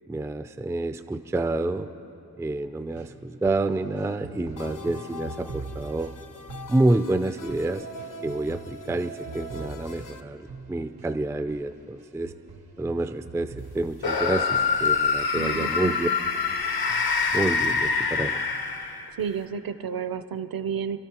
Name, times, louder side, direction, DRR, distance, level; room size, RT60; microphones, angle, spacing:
voice 1, 0.1-1.9 2.4-6.1 6.7-7.8 8.2-12.3 12.8-16.1 17.3-18.4, right 2 dB, 10° right, 9 dB, 0.3 m, -28 dB
sound 1, 2.9-15.1 15.5-15.7 16.0-18.1 18.5-19.1 19.5-19.6, right 4 dB, 85° right, 0.9 m, -45 dB
sound 2, 4.6-10.2, left 2 dB, 55° left, 0.6 m, -42 dB
sound 3, 14.0-19.2, left 5 dB, 75° left, 1.0 m, -25 dB
voice 2, 15.3-16.1 19.2-21.0, right 7 dB, 65° right, 11 dB, 0.6 m, -31 dB
28.0 x 13.0 x 2.9 m, 2.9 s
wide cardioid pair, 85°, 38 cm